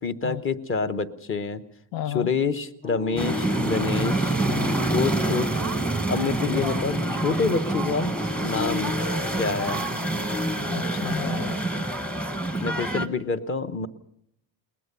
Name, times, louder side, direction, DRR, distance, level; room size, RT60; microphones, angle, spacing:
voice 1, 0.0-1.6 2.1-4.4 4.9-5.5 6.1-7.0 7.2-8.1 8.4-9.0 9.4-9.9 12.6-13.9, left 5 dB, 30° left, 11 dB, 1.0 m, -27 dB
voice 2, 1.9-2.3 3.1-3.3 4.5-4.9 10.6-11.7, left 11 dB, 80° left, 17 dB, 0.9 m, -33 dB
sound 1, 2.8-10.6, left 6 dB, 65° left, 4.0 m, -36 dB
sound 2, 3.2-13.1, right 2 dB, 5° left, 1.0 m, -27 dB
21.0 x 20.0 x 6.8 m, 0.74 s
cardioid pair, 140°, 44 cm